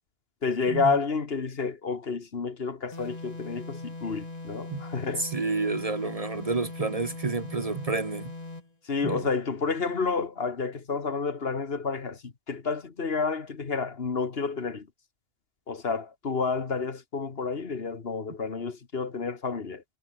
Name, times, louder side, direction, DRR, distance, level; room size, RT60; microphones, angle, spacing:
voice 1, 0.4-5.3 8.9-14.9 15.7-19.8, left 4 dB, 60° left, 1.8 m, -30 dB
sound 1, 2.9-8.7, left 2 dB, 35° left, 2.5 m, -40 dB
voice 2, 5.2-8.3 9.0-9.3, right 3 dB, 35° right, 1.0 m, -29 dB
omnidirectional pair, 1.1 m